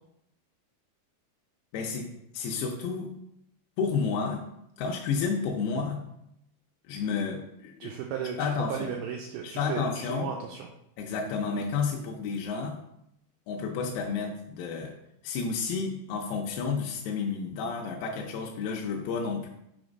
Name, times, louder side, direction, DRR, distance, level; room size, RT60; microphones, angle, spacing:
voice 1, 1.7-3.1 3.8-4.5 4.8-6.0 6.9-7.9 8.4-8.9 9.4-10.3 11.0-12.8 13.5-14.9 15.2-19.5, left 5 dB, 85° left, -1 dB, 2.7 m, -31 dB
voice 2, 7.8-10.7, right 7 dB, 80° right, 2 dB, 2.4 m, -35 dB
6.2 x 3.4 x 5.1 m, 0.80 s
omnidirectional pair, 4.6 m